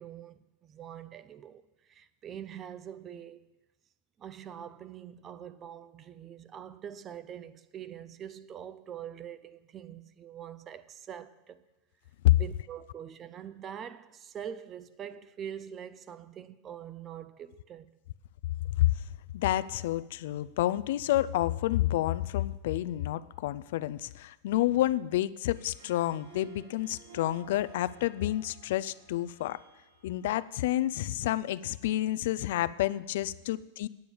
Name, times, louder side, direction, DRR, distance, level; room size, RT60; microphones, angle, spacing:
voice 1, 0.0-3.5 4.2-11.6 12.3-17.9, right 9 dB, 20° right, 0.4 m, -44 dB
voice 2, 18.8-19.1 19.3-29.6 30.0-33.9, left 14 dB, 60° left, 0.3 m, -29 dB
Harp, 25.4-30.8, right 5 dB, 85° right, 4.9 m, -55 dB
9.2 x 8.5 x 7.1 m
supercardioid pair, 175°, 0 cm